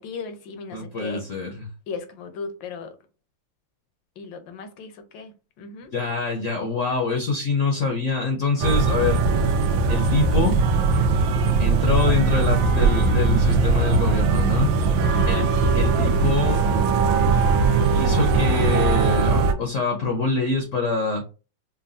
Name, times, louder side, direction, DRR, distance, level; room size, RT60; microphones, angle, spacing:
voice 1, 0.0-1.2 1.9-2.9 4.2-5.3 5.6-5.9 15.1-15.5, left 5 dB, 75° left, 1.4 m, -36 dB
voice 2, 0.7-1.7 5.9-9.2 9.9-10.6 11.6-14.7 15.3-15.5 15.7-16.7 17.9-21.2, left 4 dB, 55° left, 0.9 m, -25 dB
sound 1, 8.6-19.5, right 4 dB, 80° right, 1.3 m, -20 dB
5.5 x 2.3 x 2.6 m
omnidirectional pair, 2.1 m